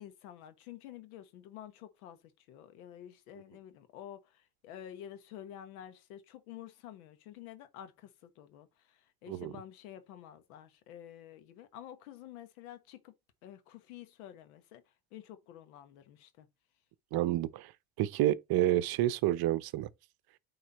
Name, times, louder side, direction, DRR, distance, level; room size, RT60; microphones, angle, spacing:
voice 1, 0.0-2.2 2.5-13.1 13.4-14.8 15.1-16.5, left 11 dB, 85° left, 1.5 m, -50 dB
voice 2, 17.1-17.7 18.0-19.9, right 14 dB, 55° right, 0.8 m, -29 dB
8.9 x 3.9 x 4.1 m
supercardioid pair, 85°, 43 cm